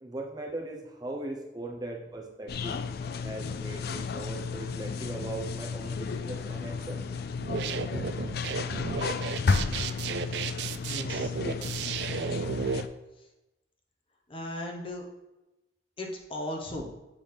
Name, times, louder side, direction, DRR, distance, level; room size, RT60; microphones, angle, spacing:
voice 1, 0.0-2.8 3.2-7.0 9.7-9.8, right 2 dB, 20° right, 0 dB, 0.7 m, -39 dB
sound 1, 2.5-12.9, left 4 dB, 60° left, 0.4 m, -33 dB
sound 2, 7.3-12.8, right 6 dB, 65° right, 0.3 m, -33 dB
voice 2, 9.8-10.5 10.9-11.4 14.3-15.0 16.0-16.9, left 1 dB, 30° left, 0 dB, 1.0 m, -38 dB
7.4 x 6.1 x 3.4 m, 1.0 s
head